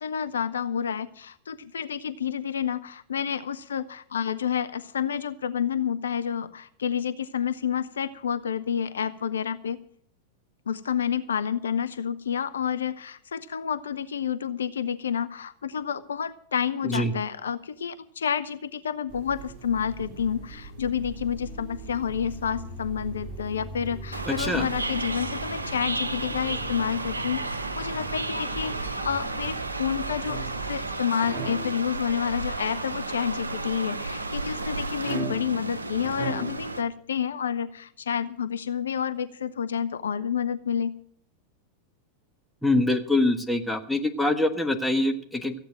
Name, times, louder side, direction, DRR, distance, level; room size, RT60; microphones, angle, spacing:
voice 1, 0.0-9.8 10.7-41.0, left 8 dB, 70° left, 14 dB, 0.5 m, -29 dB
sound 1, 19.1-30.9, right 3 dB, 20° right, 6.1 m, -40 dB
sound 2, 24.1-36.8, right 2 dB, 80° right, 0.8 m, -33 dB
voice 2, 24.3-24.7 42.6-45.5, left 2 dB, ahead, 4 dB, 1.5 m, -24 dB
sound 3, 30.3-30.8 31.2-31.8 35.0-35.7 36.0-36.7, right 3 dB, 45° right, 4.4 m, -34 dB
15.0 x 8.6 x 7.6 m, 0.64 s
figure-of-eight pair, 90°, 0 cm